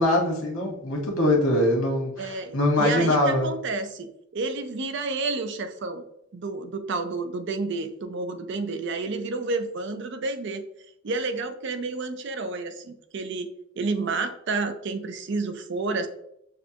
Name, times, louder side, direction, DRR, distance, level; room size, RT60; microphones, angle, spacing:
voice 1, 0.0-3.5, left 1 dB, 80° left, 0 dB, 1.4 m, -23 dB
voice 2, 2.2-6.0 6.3-10.6 11.0-13.5 13.8-16.1, right 3 dB, 55° right, 8 dB, 0.5 m, -30 dB
6.4 x 2.2 x 2.8 m, 0.74 s
head